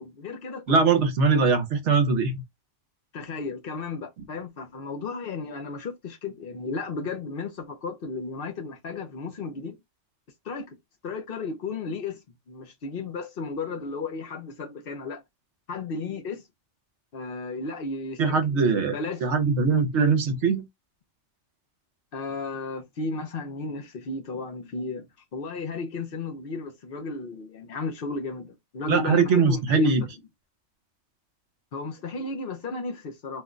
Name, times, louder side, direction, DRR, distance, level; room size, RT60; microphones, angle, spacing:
voice 1, 0.0-1.1 3.1-9.7 10.4-10.8 11.0-12.2 12.5-15.2 15.7-16.4 17.1-19.2 22.1-25.1 25.3-29.9 31.7-33.4, left 4 dB, 55° left, 0.8 m, -34 dB
voice 2, 0.7-2.4 18.2-18.9 19.2-20.7 28.9-30.0, right 4 dB, 75° right, 1.0 m, -21 dB
2.5 x 2.1 x 3.6 m
omnidirectional pair, 1.2 m